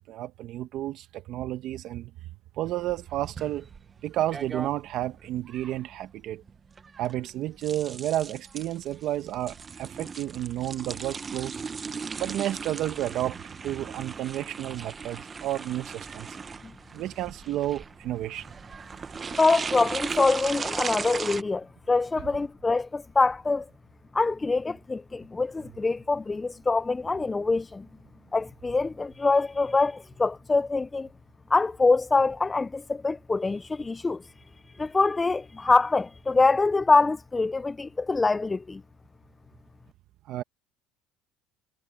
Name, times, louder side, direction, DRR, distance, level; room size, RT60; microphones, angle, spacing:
voice 1, 0.1-2.1 2.6-3.6 4.0-6.4 7.0-11.6 12.2-16.4 16.9-18.5 40.3-40.4, right 13 dB, 60° right, 1.1 m, -31 dB
sound 1, 2.7-21.4, right 5 dB, 25° right, 0.9 m, -38 dB
voice 2, 19.4-23.7 24.1-27.9 28.3-31.1 31.5-34.2 34.8-38.8, left 3 dB, 15° left, 0.4 m, -24 dB
cardioid pair, 120°, 0 cm